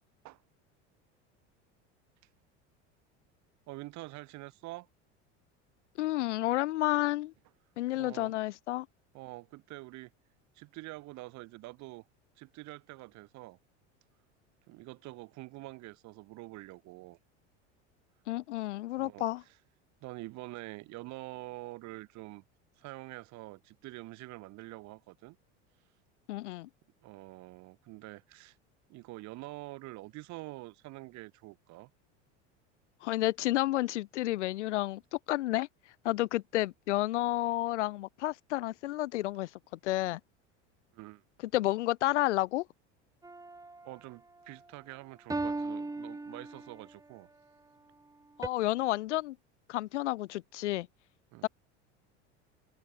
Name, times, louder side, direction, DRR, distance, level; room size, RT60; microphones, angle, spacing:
voice 1, 3.7-4.9 7.9-8.3 9.1-10.1 10.6-12.0 12.4-13.6 14.7-17.2 19.0-19.3 20.0-22.4 22.8-25.4 27.0-28.6 28.9-31.9 40.9-41.2 43.8-47.3 51.3-51.5, right 20 dB, 55° right, 1.1 m, -46 dB
voice 2, 5.9-7.3 7.8-8.9 18.3-19.4 26.3-26.7 33.0-40.2 41.4-42.7 48.4-49.4 49.7-50.9 51.4-51.5, left 16 dB, 85° left, 1.6 m, -31 dB
sound 1, 43.2-43.9 45.3-46.9 48.4-48.5, right 3 dB, 10° right, 1.7 m, -37 dB
open air
hypercardioid pair, 90°, 35 cm